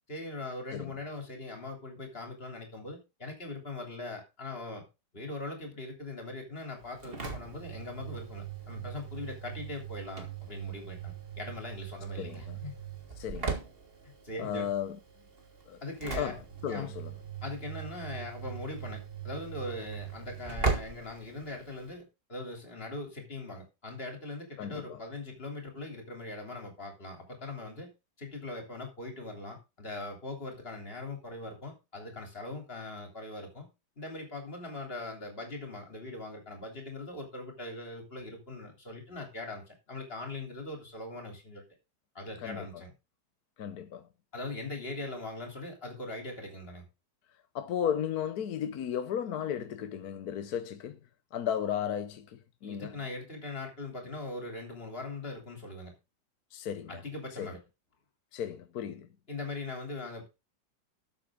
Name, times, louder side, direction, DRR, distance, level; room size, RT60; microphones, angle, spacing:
voice 1, 0.1-4.8 5.1-12.7 14.2-15.0 15.8-16.4 16.7-16.9 17.4-27.9 28.2-33.7 34.0-41.6 42.2-42.9 44.3-46.8 52.6-55.9 56.9-57.6 59.3-60.3, left 2 dB, 30° left, 3.5 m, -41 dB
Engine / Slam, 6.8-21.9, right 5 dB, 30° right, 2.1 m, -39 dB
voice 2, 12.2-12.6 13.2-13.6 14.4-15.0 15.7-15.8 16.1-17.1 24.6-25.0 42.4-42.6 43.6-44.1 47.5-51.0 51.3-53.0 56.5-57.0 57.4-57.5 58.3-59.1, left 9 dB, 60° left, 1.2 m, -35 dB
13.0 x 7.8 x 3.7 m
omnidirectional pair, 2.1 m